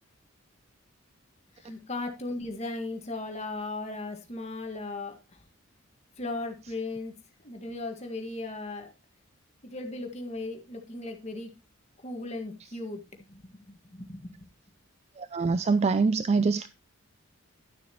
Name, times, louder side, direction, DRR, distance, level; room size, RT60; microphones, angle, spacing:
voice 1, 1.6-5.4 6.2-7.1 7.4-8.9 9.6-11.5 12.0-14.5, left 2 dB, 30° left, 1.8 m, -37 dB
voice 2, 15.2-16.7, right 4 dB, 30° right, 0.3 m, -24 dB
12.0 x 7.1 x 3.0 m
head